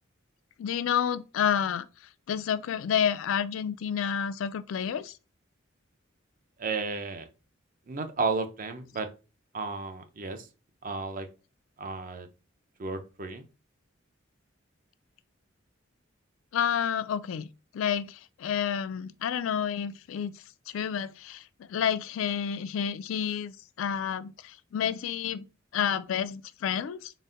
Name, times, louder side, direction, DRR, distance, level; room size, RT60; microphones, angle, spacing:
voice 1, 0.6-1.9 2.3-5.1 16.5-17.5 17.7-20.3 20.7-25.5 25.7-27.1, left 8 dB, 80° left, 0.3 m, -29 dB
voice 2, 6.6-7.2 7.9-9.1 9.5-10.5 10.8-11.3 11.8-12.3 12.8-13.4, right 4 dB, 45° right, 0.6 m, -33 dB
4.0 x 2.1 x 3.7 m
head